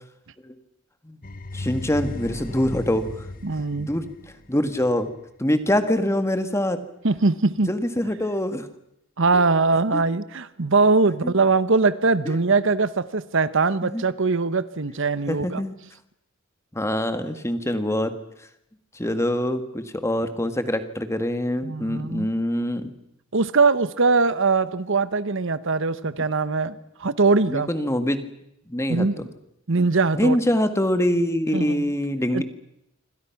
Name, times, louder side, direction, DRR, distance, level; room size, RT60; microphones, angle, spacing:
sound 1, 1.2-5.1, left 2 dB, 40° left, 1.2 m, -36 dB
voice 1, 1.5-3.2 3.8-4.0 4.5-5.1 5.4-6.8 7.7-8.7 9.9-10.0 11.2-11.3 12.2-12.3 13.8-14.0 15.3-15.8 16.7-18.1 18.9-22.9 27.5-28.2 28.7-29.1 30.2-32.4, left 1 dB, 15° left, 9 dB, 1.7 m, -24 dB
voice 2, 3.4-3.9 7.0-7.7 9.2-15.6 21.6-22.3 23.3-27.7 28.9-29.3 29.7-30.4 31.5-31.9 32.3-32.4, right 3 dB, 65° right, 14 dB, 1.0 m, -21 dB
27.0 x 25.5 x 6.0 m, 0.79 s
head